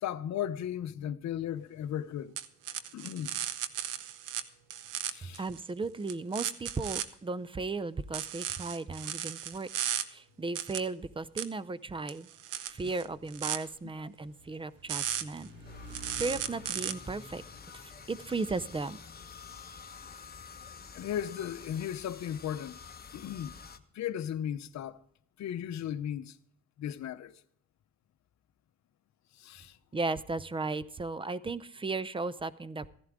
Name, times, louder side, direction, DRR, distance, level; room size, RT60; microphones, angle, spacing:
voice 1, 0.0-2.3 2.9-3.3 5.1-5.4 20.9-22.8 23.1-23.5 23.9-25.0 25.4-26.4 26.8-27.3 29.4-29.8, left 10 dB, 65° left, 0.8 m, -36 dB
sound 1, 2.4-4.4 4.7-5.6 6.1-7.1 8.1-10.0 10.6-10.8 11.4-11.5 12.1-13.6 14.9-15.5 15.9-16.9, right 11 dB, 85° right, 0.8 m, -35 dB
voice 2, 5.4-9.7 10.1-12.3 12.7-15.5 16.2-17.4 18.1-19.0 29.9-32.9, right 3 dB, 15° right, 0.6 m, -35 dB
sound 2, 12.7-21.0, equal, 35° right, 5.4 m, -53 dB
sound 3, 15.6-23.8, left 6 dB, 30° left, 1.1 m, -49 dB
15.0 x 11.0 x 3.6 m
cardioid pair, 90°, 30 cm